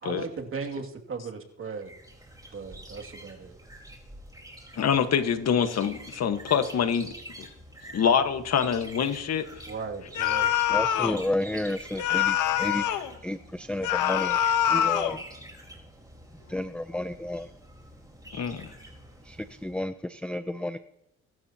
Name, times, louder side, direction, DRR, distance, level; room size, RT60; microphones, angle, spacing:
voice 1, 0.0-1.9 2.5-3.6 9.7-10.6, right 5 dB, 45° right, 3 dB, 2.5 m, -37 dB
sound 1, 1.8-19.8, right 1 dB, 10° right, 4.2 m, -47 dB
voice 2, 4.7-7.1 7.4-7.5 7.9-9.4 18.3-18.7, left 7 dB, 55° left, 8 dB, 1.5 m, -25 dB
sound 2, 10.2-11.2 12.0-13.1 13.8-15.2, left 10 dB, 85° left, 1.2 m, -25 dB
voice 3, 10.7-14.4 14.7-15.2 16.5-17.5 19.2-20.8, left 1 dB, 5° left, 11 dB, 0.5 m, -32 dB
24.0 x 12.5 x 2.9 m, 0.83 s
cardioid pair, 90°, 30 cm